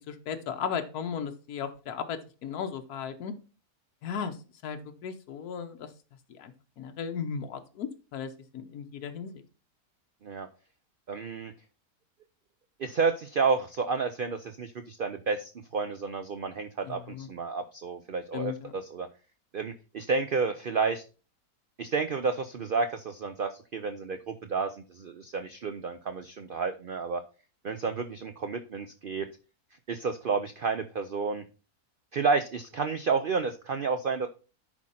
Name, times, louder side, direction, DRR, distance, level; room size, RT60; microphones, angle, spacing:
voice 1, 0.1-3.3 4.0-4.4 4.6-5.9 6.3-9.4 16.9-17.3 18.3-18.7, left 7 dB, 75° left, 6 dB, 1.4 m, -36 dB
voice 2, 11.1-11.5 12.8-19.1 19.5-21.0 21.8-27.2 27.6-29.3 29.9-31.4 32.1-34.3, right 4 dB, 70° right, 9 dB, 0.5 m, -30 dB
10.5 x 4.5 x 4.2 m, 0.34 s
omnidirectional pair, 1.6 m